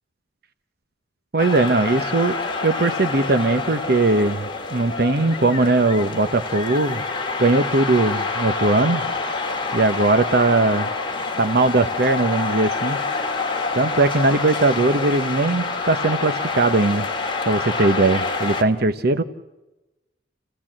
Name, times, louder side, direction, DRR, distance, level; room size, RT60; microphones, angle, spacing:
voice 1, 1.3-2.4 2.6-7.0 7.4-9.0 9.7-10.9 11.4-13.0 13.7-17.1 17.5-19.2, right 2 dB, 55° right, 10 dB, 0.9 m, -19 dB
sound 1, 1.4-18.6, left 3 dB, 25° left, 2.1 m, -27 dB
29.0 x 15.5 x 7.5 m, 1.0 s
head